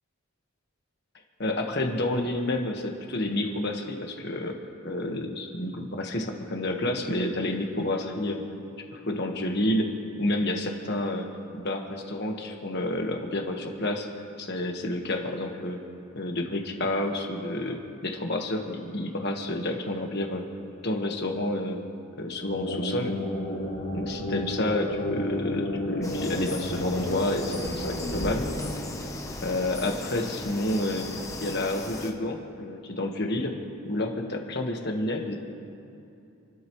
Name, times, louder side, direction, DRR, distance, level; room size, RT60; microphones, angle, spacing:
voice 1, 1.4-4.6 4.8-8.4 8.9-9.9 10.2-11.3 11.5-14.1 14.4-15.8 16.1-20.4 20.8-21.8 22.2-23.1 23.9-28.4 29.4-31.1 31.4-33.5 33.8-35.4, left 1 dB, 50° left, 2 dB, 1.5 m, -29 dB
sound 1, 22.2-29.8, left 1 dB, 80° left, 3.1 m, -32 dB
sound 2, 26.0-32.1, left 2 dB, 15° left, 0.9 m, -37 dB
28.5 x 12.5 x 3.2 m, 2.7 s
head